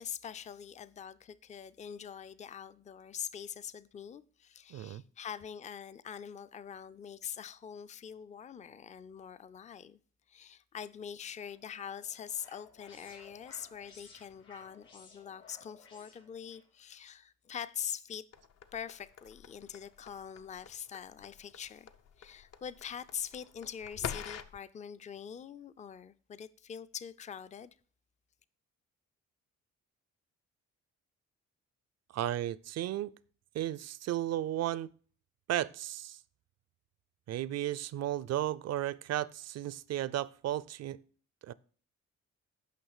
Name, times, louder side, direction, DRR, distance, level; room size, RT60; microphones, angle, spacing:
voice 1, 0.0-10.0 10.3-18.3 18.7-21.9 22.2-27.8, left 8 dB, 25° left, 0.4 m, -44 dB
voice 2, 4.7-5.0 32.1-33.1 33.5-34.9 35.5-36.2 37.3-41.0 41.4-41.5, right 13 dB, 60° right, 0.4 m, -34 dB
sound 1, 11.5-16.7, left 4 dB, 90° left, 2.6 m, -58 dB
sound 2, 18.3-24.6, left 7 dB, 55° left, 0.7 m, -46 dB
9.2 x 5.6 x 4.8 m
cardioid pair, 90°, 30 cm